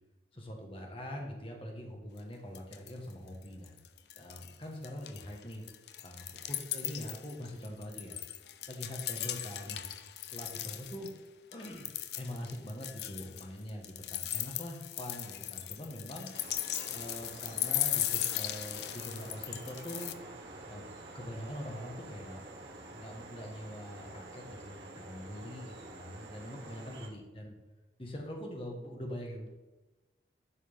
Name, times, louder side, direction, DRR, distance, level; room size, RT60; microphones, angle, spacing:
voice 1, 0.3-3.8 4.2-5.6 6.0-8.2 8.7-9.8 10.3-11.1 11.5-16.3 16.9-20.1 20.7-20.9 21.1-22.4 22.9-27.6 28.0-29.5, equal, 30° left, 1 dB, 1.4 m, -43 dB
sound 1, 2.2-2.3 2.5-3.1 3.4-4.5 4.8-11.1 11.5-20.1, left 13 dB, 75° left, 0.5 m, -38 dB
sound 2, 16.3-27.1, right 2 dB, 85° right, 1.5 m, -49 dB
11.0 x 6.3 x 3.6 m, 1.1 s
head